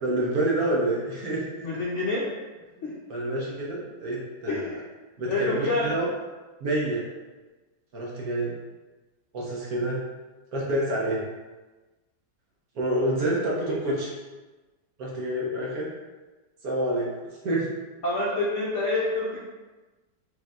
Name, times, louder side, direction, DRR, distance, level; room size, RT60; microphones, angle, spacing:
voice 1, 0.0-1.4 2.8-4.7 5.2-6.1 6.6-7.0 7.9-8.6 9.3-10.0 10.5-11.2 12.7-14.1 15.0-15.9 16.6-17.1 17.4-17.7, right 1 dB, 65° right, -4 dB, 1.2 m, -27 dB
voice 2, 1.6-2.2 2.8-2.9 4.5-4.8 5.2-5.9 18.0-19.4, left 2 dB, 65° left, -6 dB, 0.7 m, -27 dB
4.6 x 3.3 x 2.4 m, 1.2 s
omnidirectional pair, 1.8 m